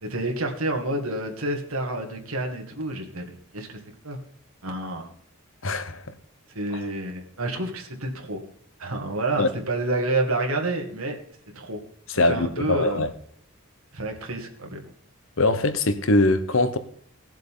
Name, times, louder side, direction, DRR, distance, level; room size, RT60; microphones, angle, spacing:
voice 1, 0.0-3.8 4.0-4.2 4.6-5.1 6.5-8.4 8.8-11.2 11.6-11.8 12.1-13.0 13.9-14.8, right 2 dB, 80° right, 2.1 m, -29 dB
voice 2, 5.6-6.0 9.4-9.5 12.1-13.1 15.4-16.8, left 2 dB, 65° left, 1.0 m, -22 dB
18.0 x 7.5 x 3.7 m
head